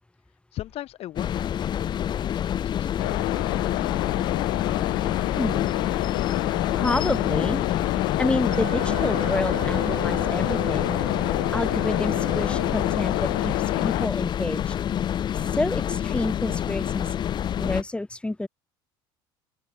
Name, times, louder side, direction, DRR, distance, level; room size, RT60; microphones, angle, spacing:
voice 1, 0.5-4.3, left 14 dB, 55° left, 2.7 m, -40 dB
Alster Ship, 1.2-17.8, left 10 dB, 40° left, 0.5 m, -28 dB
sound 1, 3.0-14.1, left 40 dB or more, 75° left, 0.9 m, -28 dB
voice 2, 5.3-5.7 6.8-7.6 8.2-11.0 11.3-14.7 15.5-17.1 17.6-18.5, left 2 dB, 10° left, 1.5 m, -29 dB
Wind instrument woodwind instrument, 8.5-13.7, right 16 dB, 55° right, 0.4 m, -37 dB
supercardioid pair, 85°, 12 cm